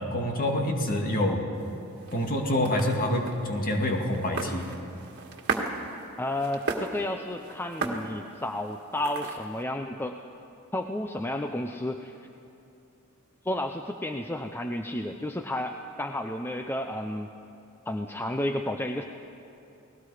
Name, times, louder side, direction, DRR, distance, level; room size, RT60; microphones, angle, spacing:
voice 1, 0.0-1.5 2.1-4.7, left 1 dB, 40° left, 1 dB, 2.3 m, -27 dB
sound 1, 1.5-9.6, right 3 dB, 50° right, 1.9 m, -37 dB
voice 2, 6.2-10.2 10.7-12.2 13.4-17.3 17.9-19.0, left 1 dB, 10° left, 5 dB, 0.5 m, -32 dB
29.5 x 19.0 x 5.0 m, 2.8 s
head